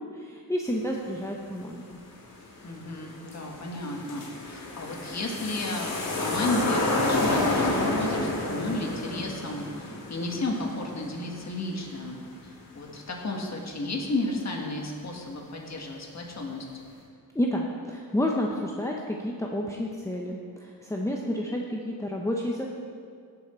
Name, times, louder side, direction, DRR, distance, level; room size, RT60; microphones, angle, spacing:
voice 1, 0.0-2.0 17.3-22.7, left 1 dB, 10° left, -1 dB, 0.8 m, -30 dB
sound 1, 2.4-2.5 2.9-12.6 12.9-13.0, left 2 dB, 65° left, 2.5 m, -30 dB
voice 2, 2.6-12.2 12.4-16.7, left 2 dB, 50° left, 1 dB, 1.6 m, -33 dB
16.5 x 6.0 x 4.4 m, 2.3 s
wide cardioid pair, 105°, 36 cm